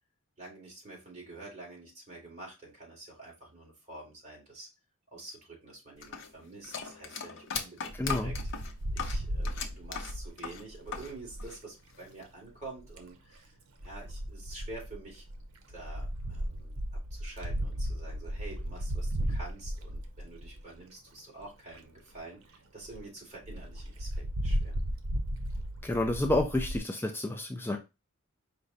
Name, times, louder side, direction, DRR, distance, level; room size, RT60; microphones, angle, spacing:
voice 1, 0.4-4.7 5.1-8.3 8.9-13.5 13.8-15.2 15.7-16.8 17.1-24.8, right 2 dB, 35° right, -2 dB, 2.3 m, -47 dB
sound 1, 6.0-11.1 11.4-12.2, left 6 dB, 60° left, 0.7 m, -38 dB
Wind, 7.9-11.5 12.6-13.1 13.8-20.8 21.4-21.5 21.7-21.8 22.1-22.2 22.5-22.6 22.9-23.0 23.4-26.8, right 1 dB, 90° right, 0.7 m, -35 dB
voice 2, 8.0-8.3 25.8-27.8, left 1 dB, 10° left, 4 dB, 0.4 m, -29 dB
4.9 x 2.2 x 4.0 m, 0.25 s
head